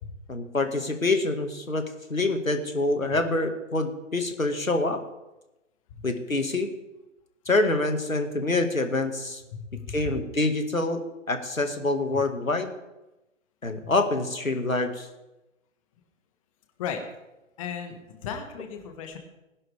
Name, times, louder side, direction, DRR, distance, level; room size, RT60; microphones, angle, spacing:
voice 1, 0.3-5.0 6.0-6.7 7.5-9.4 9.9-11.0 11.3-12.7 13.6-15.1, left 2 dB, 80° left, 6 dB, 2.1 m, -26 dB
voice 2, 9.5-10.2 12.1-12.2 13.8-13.9 16.8-17.0 17.6-19.2, left 6 dB, 25° left, 5 dB, 1.7 m, -36 dB
20.0 x 11.0 x 3.5 m, 0.97 s
figure-of-eight pair, 135°, 40 cm